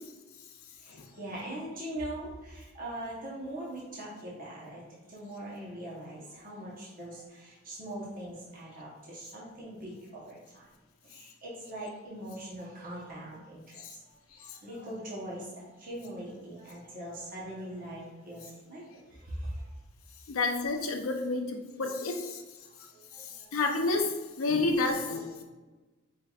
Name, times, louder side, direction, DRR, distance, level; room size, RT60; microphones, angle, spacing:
voice 1, 0.8-10.7 11.0-13.6 13.9-18.8 19.1-19.7 22.6-23.5, right 1 dB, 45° right, -6 dB, 0.9 m, -41 dB
voice 2, 20.3-22.4 23.5-24.1 24.4-25.4, left 3 dB, 90° left, 3 dB, 0.6 m, -29 dB
4.7 x 3.3 x 2.3 m, 1.2 s
head